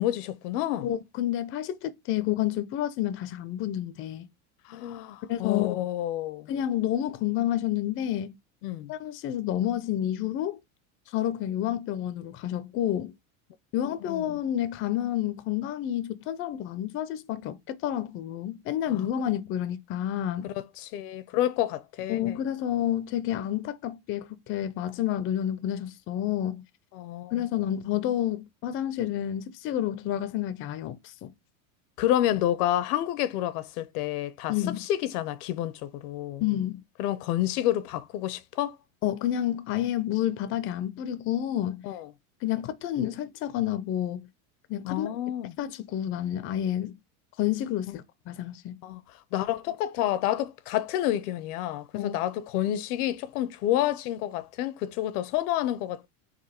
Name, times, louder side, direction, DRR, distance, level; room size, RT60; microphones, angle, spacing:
voice 1, 0.0-0.9 4.7-6.5 8.6-8.9 13.8-14.4 18.9-19.1 20.4-22.3 26.9-27.3 32.0-36.4 37.0-38.8 41.8-42.1 44.8-45.5 47.9-48.0 48.8-49.0 49.3-56.1, left 13 dB, 80° left, 0.7 m, -29 dB
voice 2, 0.8-4.3 5.3-5.7 6.5-8.4 8.9-10.6 11.1-13.1 13.7-20.5 22.1-26.6 27.3-31.3 34.5-34.8 36.4-36.8 39.0-41.8 42.4-44.3 44.7-45.1 45.6-46.9 47.4-48.8 51.9-52.1, left 11 dB, 30° left, 0.4 m, -29 dB
4.1 x 2.6 x 4.2 m
supercardioid pair, 130°, 44 cm